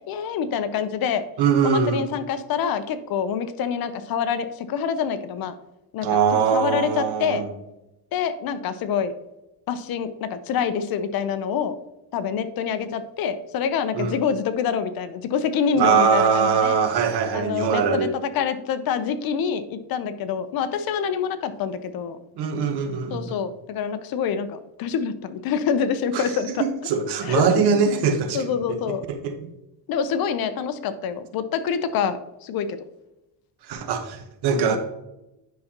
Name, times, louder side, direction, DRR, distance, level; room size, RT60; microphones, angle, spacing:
voice 1, 0.1-1.2 1.6-5.5 5.9-6.2 6.5-7.4 8.1-9.1 9.7-11.8 12.1-16.8 17.3-22.2 23.1-26.6 27.2-27.6 28.3-29.0 29.9-32.8 34.5-34.8, left 7 dB, 60° left, 11 dB, 0.7 m, -26 dB
voice 2, 1.4-2.0 6.0-7.5 14.0-14.2 15.8-18.1 22.4-23.4 26.1-26.3 26.6-28.4 28.7-28.8 29.1-29.5 33.7-34.8, right 6 dB, 70° right, 7 dB, 1.1 m, -22 dB
9.3 x 5.8 x 2.9 m, 0.92 s
cardioid pair, 145°, 41 cm